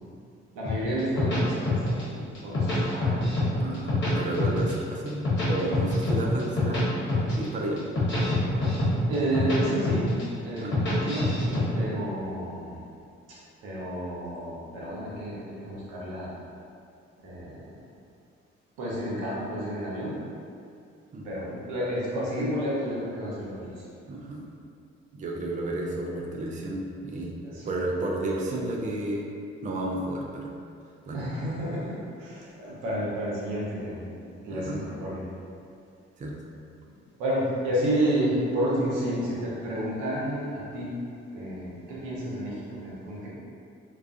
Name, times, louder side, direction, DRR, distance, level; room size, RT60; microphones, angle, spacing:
voice 1, 0.5-3.8 9.1-12.8 13.6-16.3 17.2-17.8 18.8-20.1 21.2-23.9 27.4-27.7 31.1-35.3 37.2-40.9 41.3-43.3, right 1 dB, 75° right, -6 dB, 0.7 m, -31 dB
sound 1, 0.6-2.0 2.3-3.5 3.7-4.7 5.1-6.8 7.1-7.4 7.8-9.6 9.8-10.2 10.6-11.6, left 2 dB, 40° left, 1.1 m, -26 dB
voice 2, 3.6-6.9 7.4-7.8 10.6-10.8 21.1-21.3 24.0-24.4 25.1-27.3 27.7-29.2 29.6-30.5 31.1-31.2 34.5-34.8 36.2-36.3, right 1 dB, 25° right, -2 dB, 0.4 m, -32 dB
2.3 x 2.3 x 2.4 m, 2.4 s
hypercardioid pair, 45°, 30 cm